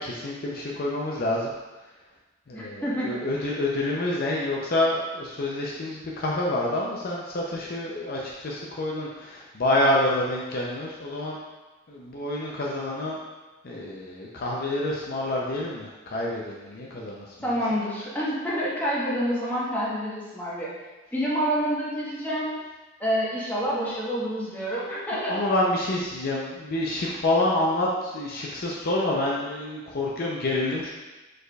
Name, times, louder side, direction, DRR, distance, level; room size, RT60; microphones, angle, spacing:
voice 1, 0.0-1.5 2.5-11.4 11.9-13.2 13.6-17.3 25.1-30.9, left 1 dB, 50° left, -3 dB, 0.5 m, -27 dB
voice 2, 2.5-3.2 17.4-20.7 21.1-22.5 23.0-25.4, equal, 10° left, -8 dB, 1.1 m, -28 dB
4.8 x 4.5 x 2.3 m, 1.2 s
head